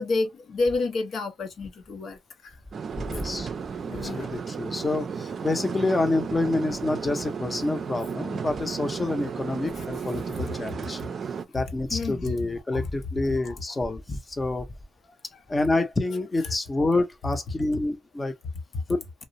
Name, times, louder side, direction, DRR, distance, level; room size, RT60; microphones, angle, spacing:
voice 1, 0.0-2.5 3.8-4.3 9.8-9.9 11.9-12.3 12.7-12.9 13.4-13.8 15.3-15.6, left 3 dB, 60° left, 0.7 m, -30 dB
sound 1, 2.7-11.5, right 6 dB, 50° right, 0.4 m, -34 dB
voice 2, 3.0-3.5 3.9-11.0 11.5-14.7 15.5-18.3 18.9-19.0, left 2 dB, 20° left, 0.7 m, -27 dB
2.4 x 2.0 x 2.6 m
cardioid pair, 90°, 0 cm